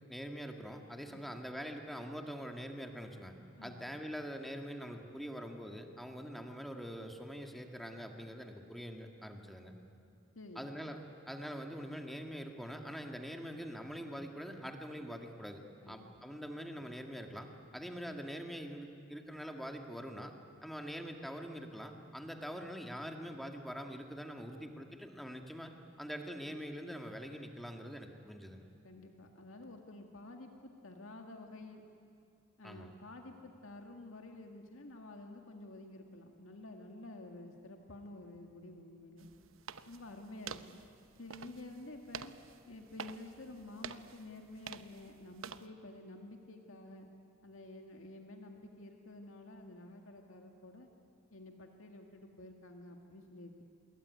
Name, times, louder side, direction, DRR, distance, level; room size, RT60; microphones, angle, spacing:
voice 1, 0.1-3.3 3.6-9.7 10.6-11.0 11.3-20.3 20.6-25.7 26.0-28.7 32.6-32.9, equal, ahead, 4 dB, 2.0 m, -44 dB
voice 2, 10.4-10.7 15.8-16.3 28.8-31.8 32.6-39.3 39.9-40.8 41.2-42.3 42.7-47.1 47.4-50.9 51.3-53.6, left 2 dB, 90° left, 3 dB, 2.0 m, -50 dB
sound 1, 39.2-45.7, right 6 dB, 85° right, 0.9 m, -49 dB
26.0 x 21.5 x 9.7 m, 2.5 s
head